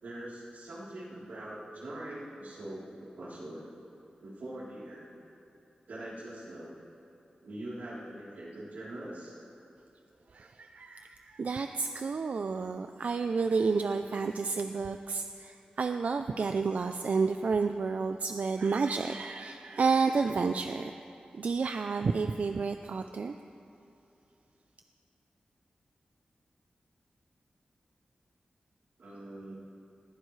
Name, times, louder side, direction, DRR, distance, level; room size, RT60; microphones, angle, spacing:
voice 1, 0.0-3.7 4.2-5.1 5.9-6.7 7.4-9.3 29.0-29.5, right 1 dB, 90° right, -7 dB, 3.5 m, -43 dB
voice 2, 10.3-20.9 21.3-23.3, right 4 dB, 65° right, 7 dB, 0.4 m, -30 dB
20.0 x 14.5 x 3.2 m, 2.8 s
wide cardioid pair, 115°, 3 cm